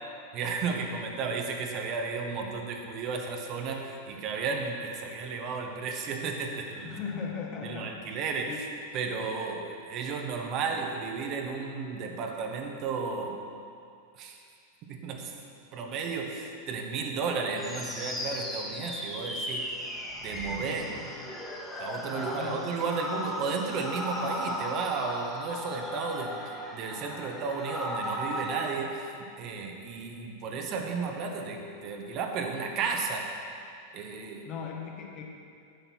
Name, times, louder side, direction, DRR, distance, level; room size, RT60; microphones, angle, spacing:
voice 1, 0.3-7.0 7.6-8.5 8.9-13.4 14.2-14.4 14.9-15.3 15.7-19.7 20.2-21.0 21.8-26.4 26.7-33.3 33.9-34.5, right 4 dB, 40° right, 2 dB, 1.2 m, -33 dB
voice 2, 6.8-8.6 21.1-21.2 22.1-23.2 34.4-35.3, left 5 dB, 35° left, 1 dB, 1.6 m, -39 dB
sound 1, 17.6-28.8, equal, 5° left, 1.8 m, -36 dB
9.9 x 8.6 x 6.1 m, 2.4 s
figure-of-eight pair, 90°, 0 cm